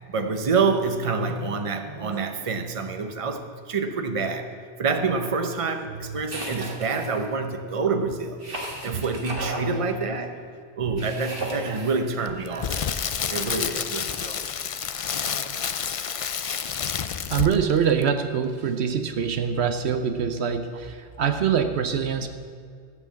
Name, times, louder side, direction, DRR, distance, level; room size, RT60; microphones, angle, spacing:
voice 1, 0.1-8.4 8.7-10.4 10.8-13.0 13.3-14.4 15.1-15.6, right 4 dB, 30° right, 6 dB, 0.9 m, -27 dB
sound 1, 6.3-7.2 8.4-9.7 11.0-12.0, right 2 dB, 55° right, 2.0 m, -34 dB
Crackle, 12.3-17.7 18.0-18.2, left 7 dB, 60° left, 0.3 m, -29 dB
voice 2, 17.3-22.3, right 7 dB, 70° right, 8 dB, 1.0 m, -24 dB
13.5 x 7.7 x 7.4 m, 2.2 s
omnidirectional pair, 1.2 m